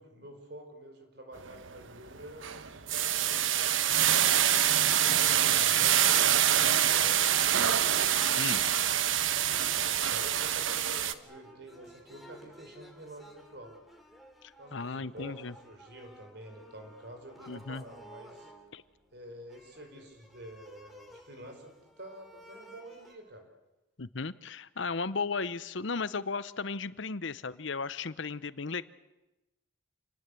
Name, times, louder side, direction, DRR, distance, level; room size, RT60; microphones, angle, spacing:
voice 1, 0.0-3.5 5.0-7.8 8.8-13.8 14.6-15.4 15.6-18.5 19.1-23.5, right 1 dB, 55° right, 5 dB, 4.9 m, -48 dB
sound 1, 1.4-1.7 2.1-11.1, right 10 dB, 80° right, 1.1 m, -25 dB
sound 2, 4.3-23.1, equal, ahead, 3.1 m, -54 dB
voice 2, 14.4-15.5 17.5-17.8 18.7-18.8 24.0-28.9, left 4 dB, 70° left, 16 dB, 0.9 m, -35 dB
28.5 x 20.0 x 8.4 m, 1.0 s
head